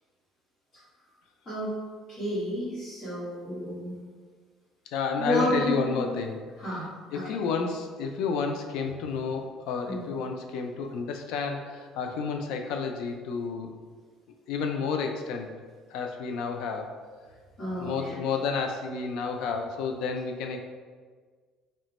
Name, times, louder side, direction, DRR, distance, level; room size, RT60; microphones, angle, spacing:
voice 1, 1.4-1.8 2.1-3.9 5.2-6.1 6.6-6.9 7.1-7.3 9.9-10.0 17.6-18.1, equal, 30° left, -13 dB, 1.2 m, -31 dB
voice 2, 4.9-6.4 7.1-13.8 14.5-15.5 15.9-16.9 17.7-20.6, left 5 dB, 80° left, 4 dB, 0.3 m, -30 dB
2.9 x 2.2 x 4.0 m, 1.5 s
cardioid pair, 155°, 0 cm